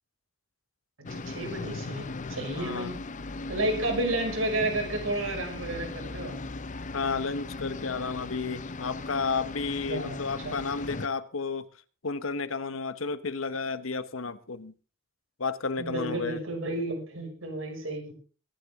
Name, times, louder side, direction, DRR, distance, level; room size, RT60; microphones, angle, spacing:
sound 1, 1.1-11.1, left 3 dB, 40° left, 0.8 m, -38 dB
voice 1, 1.1-3.0 3.5-6.4 9.9-10.2 10.4-10.6 15.8-18.1, right 1 dB, 80° right, 3 dB, 6.0 m, -31 dB
voice 2, 2.5-2.9 6.9-11.7 12.0-14.7 15.4-16.4, left 4 dB, 90° left, 13 dB, 1.1 m, -32 dB
23.5 x 10.0 x 3.7 m, 0.36 s
head